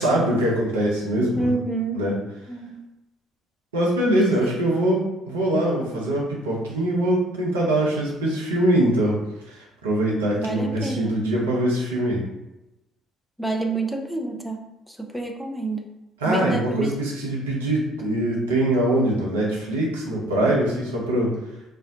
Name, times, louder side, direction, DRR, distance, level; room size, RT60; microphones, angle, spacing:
voice 1, 0.0-1.5 1.9-2.2 3.7-9.2 9.5-12.2 16.2-21.3, right 1 dB, 80° right, -4 dB, 0.6 m, -23 dB
voice 2, 1.4-2.0 2.5-2.8 4.2-4.6 10.4-11.1 13.4-15.9 16.3-17.0, right 3 dB, ahead, 2 dB, 0.5 m, -28 dB
2.5 x 2.1 x 3.7 m, 0.95 s
figure-of-eight pair, 45°, 0 cm